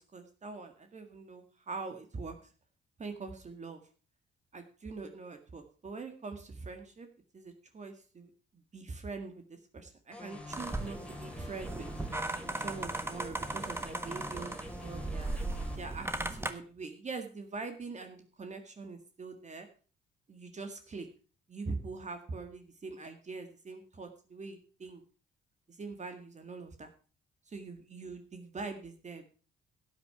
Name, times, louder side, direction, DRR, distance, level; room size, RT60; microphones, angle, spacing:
voice 1, 0.0-2.5 3.0-3.8 4.5-7.1 7.3-11.9 12.6-15.3 15.7-19.7 20.3-21.1 21.5-25.0 25.7-26.9 27.5-29.3, right 4 dB, 35° right, 6 dB, 1.9 m, -43 dB
sound 1, 10.1-15.8, left 1 dB, 5° left, 2.8 m, -47 dB
sound 2, 10.5-16.5, right 2 dB, 10° right, 1.4 m, -37 dB
12.0 x 8.8 x 5.8 m, 0.39 s
cardioid pair, 90°, 20 cm